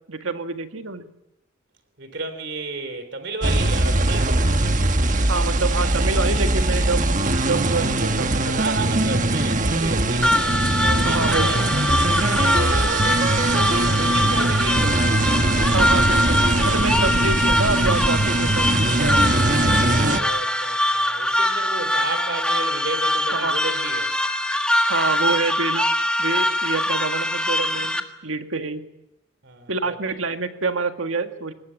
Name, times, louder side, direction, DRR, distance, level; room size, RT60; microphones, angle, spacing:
voice 1, 0.1-1.1 5.3-9.2 11.1-11.5 15.7-16.4 16.6-19.6 23.3-23.6 24.9-25.9 26.2-28.8 29.7-31.5, right 3 dB, 85° right, 1.8 m, -27 dB
voice 2, 2.0-4.6 8.6-11.6 12.4-13.2 13.5-15.4 20.1-24.1 29.4-30.2, right 3 dB, 60° right, 3.6 m, -33 dB
sound 1, 3.4-20.2, right 2 dB, 40° right, 1.4 m, -21 dB
sound 2, 10.2-28.0, left 1 dB, 5° left, 1.5 m, -23 dB
23.5 x 20.0 x 8.8 m
head